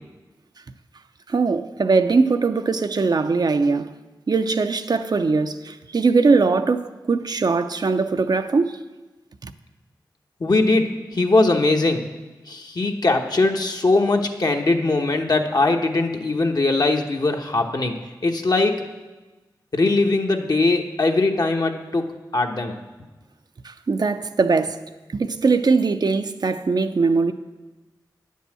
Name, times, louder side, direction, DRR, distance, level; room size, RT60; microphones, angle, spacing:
voice 1, 1.3-3.9 4.3-8.8 9.4-9.5 23.6-24.8 25.1-27.3, right 4 dB, 55° right, 0.5 m, -21 dB
voice 2, 10.4-12.1 12.5-18.8 19.7-22.1 22.3-22.7, left 2 dB, 55° left, 1.0 m, -21 dB
9.5 x 5.5 x 7.5 m
cardioid pair, 50°, 8 cm